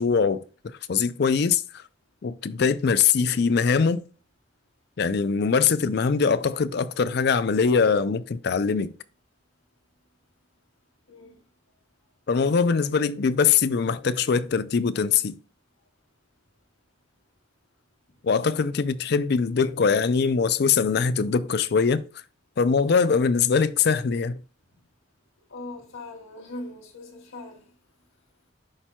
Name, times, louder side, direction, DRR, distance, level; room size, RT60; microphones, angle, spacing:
voice 1, 0.0-1.8 2.2-4.0 5.0-8.9 12.3-15.4 18.2-22.0 22.6-24.4, left 5 dB, 50° left, 0.4 m, -22 dB
voice 2, 11.1-11.4 25.5-27.7, left 2 dB, 85° left, 1.6 m, -40 dB
11.0 x 4.4 x 2.2 m
head